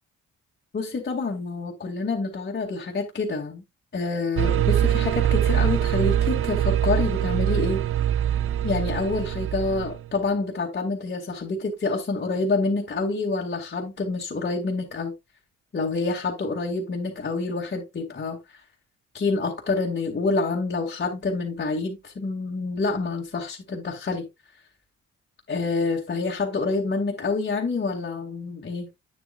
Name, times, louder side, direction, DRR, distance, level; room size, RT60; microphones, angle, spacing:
voice 1, 0.7-3.6 3.9-7.8 8.6-15.1 15.7-18.4 19.1-24.3 25.5-28.9, left 3 dB, 35° left, 2.1 m, -27 dB
sound 1, 4.4-10.1, right 10 dB, 45° right, 0.4 m, -23 dB
8.9 x 7.3 x 2.4 m
cardioid pair, 90°, 30 cm